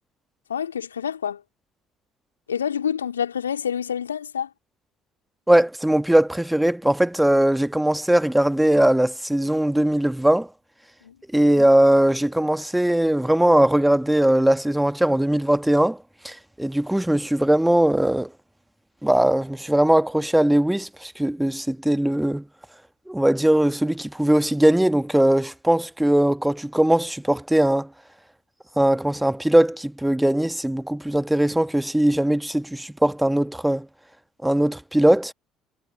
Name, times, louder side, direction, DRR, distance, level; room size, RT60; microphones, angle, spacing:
voice 1, 0.5-1.4 2.5-4.5 11.0-11.1, left 8 dB, 80° left, 3.5 m, -27 dB
voice 2, 5.5-10.5 11.3-16.0 16.2-18.3 19.0-22.4 23.1-27.9 28.8-33.9 34.4-35.3, right 1 dB, 5° right, 1.3 m, -20 dB
figure-of-eight pair, 50°, 0 cm